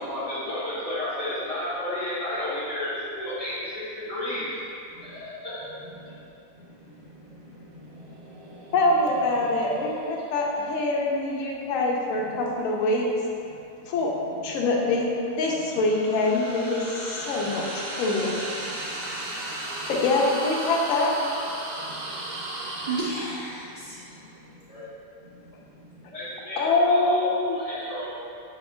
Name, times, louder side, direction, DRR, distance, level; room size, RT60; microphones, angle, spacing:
voice 1, 0.0-4.5 5.0-5.7 24.3-24.9 26.1-28.1, left 1 dB, 30° left, -11 dB, 1.1 m, -32 dB
voice 2, 6.5-8.7 18.6-19.9 21.7-22.4 22.8-24.3 25.5-25.9, right 2 dB, 80° right, -8 dB, 0.4 m, -38 dB
sound 1, 7.8-13.0 15.5-23.0, right 1 dB, 65° right, 0.9 m, -36 dB
voice 3, 8.7-13.1 13.9-14.1 14.4-15.1 15.4-18.4 19.9-21.1 26.6-27.5, left 2 dB, 75° left, -1 dB, 0.9 m, -24 dB
3.3 x 2.8 x 4.2 m, 2.5 s
omnidirectional pair, 1.4 m